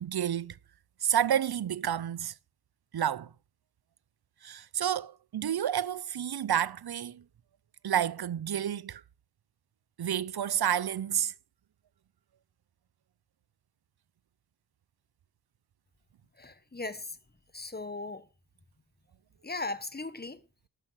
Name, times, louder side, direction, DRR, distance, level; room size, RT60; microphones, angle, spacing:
voice 1, 0.0-0.6 1.0-2.3 2.9-3.3 4.4-7.2 7.8-9.0 10.0-11.3, right 9 dB, 70° right, 0.6 m, -30 dB
voice 2, 16.4-17.2 17.5-18.2 19.4-20.4, left 3 dB, 25° left, 1.2 m, -37 dB
12.5 x 7.8 x 6.3 m
wide cardioid pair, 75°, 40 cm